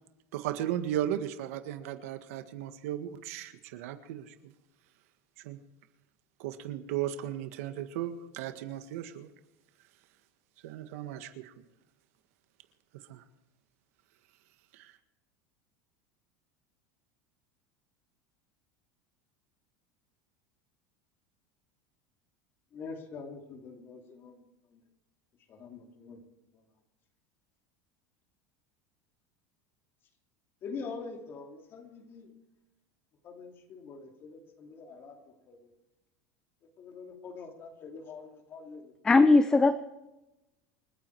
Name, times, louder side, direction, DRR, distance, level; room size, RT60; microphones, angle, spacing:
voice 1, 0.3-4.5 5.4-5.6 6.4-9.3 10.6-11.6 13.1-13.2 14.7-14.9, right 11 dB, 75° right, 9 dB, 1.7 m, -36 dB
voice 2, 22.7-24.8 25.5-26.2 26.5-26.7 30.6-32.4 33.2-35.7 36.6-38.9 39.3-39.4 39.6-39.8, left 4 dB, 30° left, 3 dB, 2.8 m, -45 dB
voice 3, 39.0-39.8, left 3 dB, 10° left, 11 dB, 0.6 m, -20 dB
28.5 x 9.9 x 4.7 m, 0.98 s
cardioid pair, 170°, 8 cm